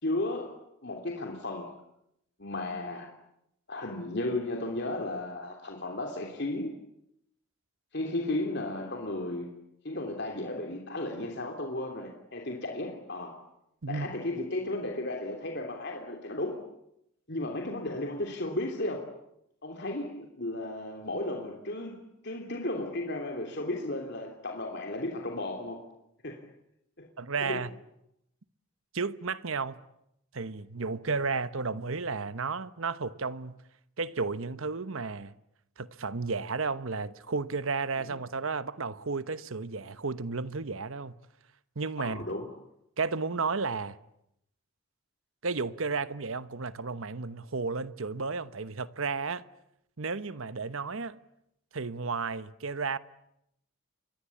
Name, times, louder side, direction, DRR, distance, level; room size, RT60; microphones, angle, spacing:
voice 1, 0.0-1.7 2.4-3.1 3.7-6.7 7.9-9.5 9.8-13.4 13.9-16.6 17.3-19.1 19.6-22.0 22.2-25.9 26.2-26.4 27.0-27.1 27.5-27.6 42.0-42.5, left 2 dB, 50° left, 3.1 m, -34 dB
voice 2, 13.8-14.1 27.2-27.7 28.9-29.9 30.3-33.6 34.0-35.3 35.8-41.1 41.8-42.2 43.0-44.0 45.4-49.4 50.0-51.2 51.7-53.0, right 4 dB, 70° right, 1.1 m, -33 dB
29.5 x 23.5 x 8.6 m
head